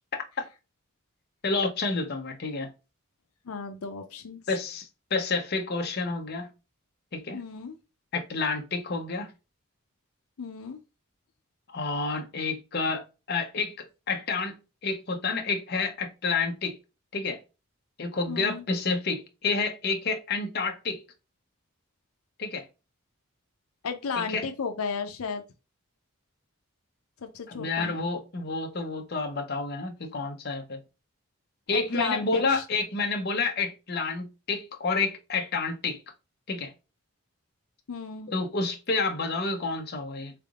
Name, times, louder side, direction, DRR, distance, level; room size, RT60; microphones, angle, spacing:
voice 1, 0.1-0.4 1.4-2.7 4.5-6.5 7.1-7.4 8.1-9.3 11.7-16.8 17.1-17.4 18.0-21.0 22.4-22.7 24.2-24.5 27.5-30.8 31.7-36.0 36.5-36.7 38.3-40.3, left 4 dB, 50° left, 0.7 m, -29 dB
voice 2, 3.5-4.4 7.3-7.8 10.4-10.8 18.3-18.6 23.8-25.4 27.2-27.9 31.7-32.6 37.9-38.3, left 5 dB, 90° left, 0.6 m, -34 dB
3.7 x 3.4 x 2.3 m
head